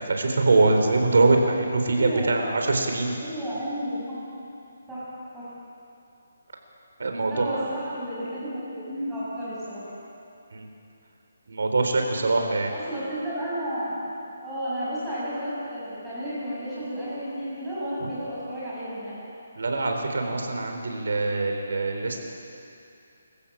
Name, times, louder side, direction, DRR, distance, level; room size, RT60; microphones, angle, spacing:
voice 1, 0.0-3.2 7.0-7.7 10.5-10.7 11.5-12.7 19.6-22.2, right 3 dB, 75° right, 3 dB, 3.7 m, -23 dB
voice 2, 1.9-2.3 3.2-4.2 4.9-5.1 5.3-5.5 7.3-9.9 12.7-14.0 14.4-19.2, equal, 5° right, -12 dB, 7.2 m, -32 dB
25.0 x 15.5 x 7.4 m, 2.6 s
hypercardioid pair, 170°, 0 cm